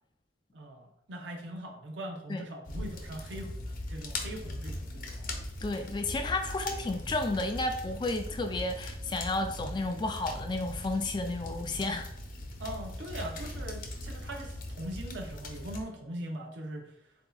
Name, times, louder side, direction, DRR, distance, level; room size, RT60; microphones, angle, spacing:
voice 1, 0.5-5.3 12.6-17.0, right 1 dB, 85° right, 2 dB, 0.7 m, -41 dB
sound 1, 2.7-15.8, left 1 dB, 50° left, 0.8 m, -40 dB
voice 2, 5.6-12.1, left 2 dB, 25° left, 6 dB, 0.3 m, -32 dB
7.7 x 2.8 x 2.3 m, 0.75 s
head